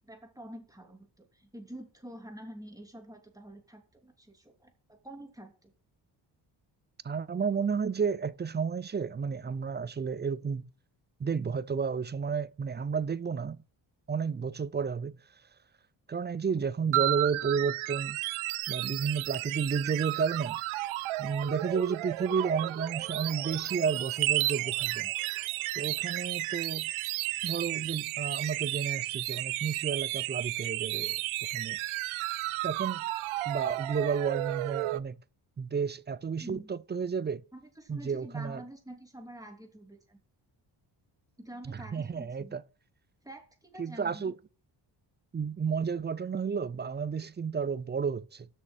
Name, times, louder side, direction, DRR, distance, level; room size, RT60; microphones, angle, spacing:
voice 1, 0.0-5.7 36.4-36.7 37.5-40.2 41.4-42.5 43.2-44.3, right 1 dB, 5° right, 2.8 m, -47 dB
voice 2, 7.0-10.7 11.2-13.6 14.1-15.2 16.1-18.2 18.7-20.6 21.2-25.1 25.7-26.9 27.4-31.2 31.5-31.8 32.6-33.0 33.5-35.1 35.6-37.4 37.9-38.6 41.6-42.6 43.8-44.3 45.3-48.5, right 6 dB, 25° right, 0.5 m, -32 dB
sound 1, 16.9-35.0, right 18 dB, 80° right, 0.5 m, -33 dB
7.5 x 6.3 x 6.2 m
cardioid pair, 70°, 48 cm